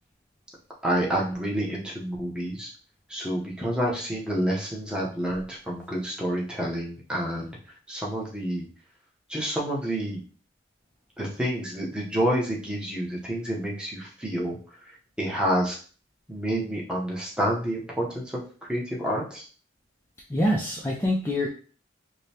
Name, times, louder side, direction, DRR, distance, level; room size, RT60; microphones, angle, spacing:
voice 1, 0.8-2.7 3.1-7.6 7.9-8.7 9.3-10.2 11.2-14.6 15.2-15.8 16.3-19.4, equal, 5° right, -4 dB, 0.8 m, -28 dB
voice 2, 20.3-21.5, left 1 dB, 10° left, -4 dB, 0.4 m, -25 dB
4.9 x 2.2 x 2.8 m, 0.42 s
head